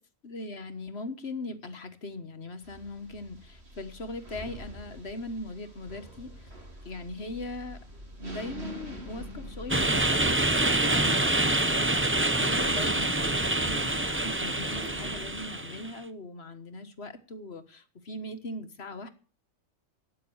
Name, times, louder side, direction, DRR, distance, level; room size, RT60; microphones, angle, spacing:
voice 1, 0.2-6.5 6.8-7.8 8.2-19.1, left 2 dB, 50° left, 9 dB, 1.6 m, -40 dB
sound 1, 2.6-15.5, right 1 dB, 50° right, 3.6 m, -45 dB
sound 2, 9.7-15.9, right 2 dB, 10° right, 0.6 m, -26 dB
13.0 x 9.3 x 7.1 m, 0.39 s
omnidirectional pair, 1.4 m